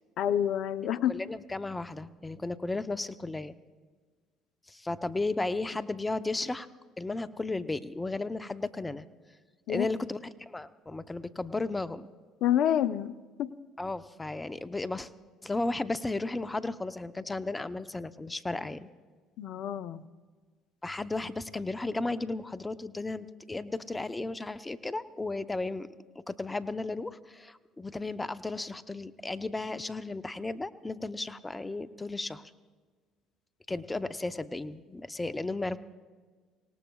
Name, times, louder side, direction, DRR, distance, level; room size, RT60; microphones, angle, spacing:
voice 1, 0.2-1.1 9.7-9.9 12.4-13.5 19.4-20.0, left 10 dB, 65° left, 15 dB, 0.6 m, -28 dB
voice 2, 1.1-3.5 4.7-6.7 7.0-9.1 9.7-12.1 13.8-15.1 15.4-18.9 20.8-25.9 26.1-32.4 33.7-35.8, left 2 dB, 15° left, 12 dB, 0.8 m, -34 dB
25.0 x 18.5 x 2.4 m, 1.5 s
hypercardioid pair, 65°, 0 cm